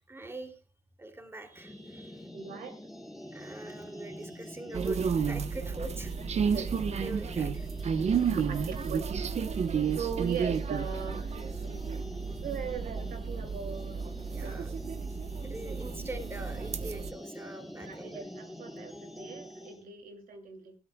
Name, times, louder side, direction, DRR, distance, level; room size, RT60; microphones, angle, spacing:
voice 1, 0.1-0.5 1.0-2.3 3.3-6.1 7.0-7.7 14.3-14.8 15.4-18.1, right 2 dB, 15° right, 5 dB, 2.9 m, -43 dB
sound 1, 1.5-19.8, left 1 dB, ahead, 2.6 m, -46 dB
voice 2, 2.3-2.8 6.5-6.7 8.3-9.1 10.0-11.3 12.4-14.0 14.4-14.6 17.8-20.8, right 6 dB, 70° right, 5 dB, 2.7 m, -40 dB
sound 2, 4.7-17.1, right 6 dB, 45° right, 1.0 m, -32 dB
21.5 x 13.0 x 2.3 m, 0.30 s
cardioid pair, 85°, 15 cm